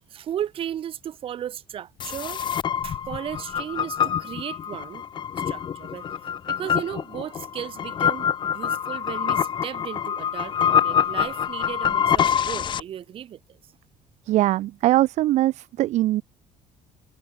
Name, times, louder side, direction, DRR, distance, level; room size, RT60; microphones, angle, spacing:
voice 1, 0.1-2.5 2.8-5.0 5.4-6.1 6.5-13.6, right 10 dB, 40° right, 3.7 m, -35 dB
sound 1, 2.0-12.8, left 8 dB, 35° left, 5.4 m, -25 dB
voice 2, 14.3-16.2, right 15 dB, 60° right, 1.1 m, -21 dB
cardioid pair, 170°, 14 cm